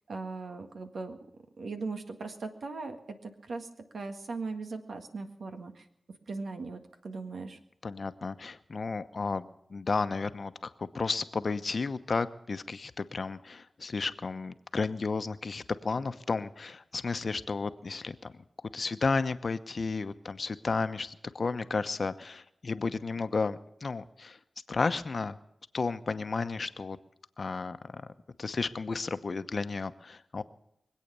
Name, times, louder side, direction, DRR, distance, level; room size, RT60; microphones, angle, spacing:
voice 1, 0.1-1.2 1.6-3.0 3.2-5.9 6.3-7.6, right 3 dB, 80° right, 6 dB, 1.8 m, -39 dB
voice 2, 7.8-18.3 18.7-24.4 24.7-25.4 25.7-27.0 27.4-28.0 28.4-30.4, left 4 dB, 60° left, 11 dB, 0.9 m, -33 dB
23.5 x 8.5 x 6.9 m, 0.79 s
cardioid pair, 55°, 0 cm